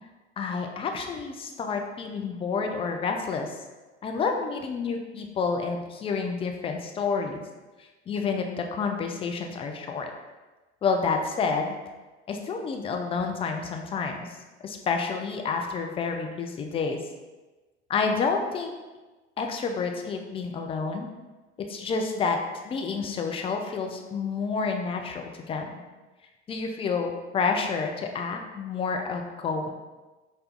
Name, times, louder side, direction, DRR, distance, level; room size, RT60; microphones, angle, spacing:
voice 1, 0.4-3.6 4.0-7.4 8.1-10.1 10.8-11.8 12.3-14.3 14.6-17.0 17.9-18.7 19.4-21.1 21.6-22.4 22.6-25.7 26.5-29.7, left 5 dB, 15° left, 3 dB, 0.3 m, -29 dB
5.5 x 2.2 x 2.4 m, 1.2 s
figure-of-eight pair, 70°, 35 cm